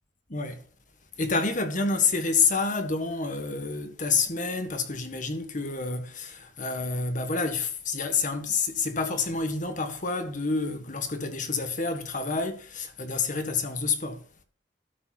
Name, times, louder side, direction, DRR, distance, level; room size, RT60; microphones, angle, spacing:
voice 1, 0.3-0.6 1.2-14.2, left 4 dB, 45° left, 1.8 m, -28 dB
12.5 x 5.6 x 6.0 m
head